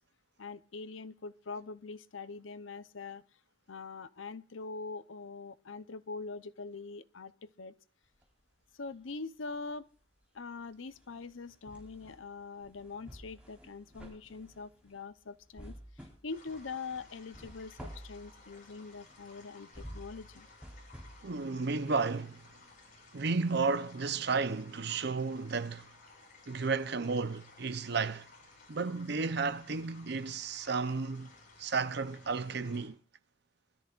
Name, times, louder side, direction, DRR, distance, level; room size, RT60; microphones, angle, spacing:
voice 1, 0.4-3.2 3.7-7.7 8.8-9.9 10.3-20.5, left 4 dB, 90° left, 0.8 m, -43 dB
sound 1, 8.0-9.2 9.5-23.2 23.6-23.7, equal, 5° right, 4.3 m, -52 dB
sound 2, 16.3-32.9, left 3 dB, 45° left, 7.3 m, -57 dB
voice 2, 21.2-22.4 23.1-25.9 26.5-28.3 28.7-31.3 31.6-33.0, right 4 dB, 60° right, 0.8 m, -33 dB
25.0 x 13.5 x 2.5 m
head